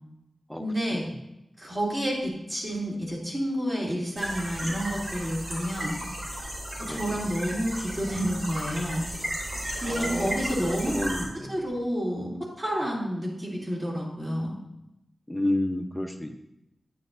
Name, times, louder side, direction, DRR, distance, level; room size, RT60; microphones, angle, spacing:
voice 1, 0.6-1.0 1.6-6.0 6.9-9.1 9.8-10.9 11.5-12.3 12.6-14.6, equal, 35° right, -5 dB, 2.6 m, -29 dB
sound 1, 4.2-11.2, right 1 dB, 50° right, 2.9 m, -34 dB
voice 2, 6.9-7.2 9.9-10.4 10.9-11.5 15.3-16.4, left 1 dB, 5° left, 4 dB, 0.7 m, -30 dB
10.0 x 9.1 x 2.6 m, 0.88 s
wide cardioid pair, 125°, 0 cm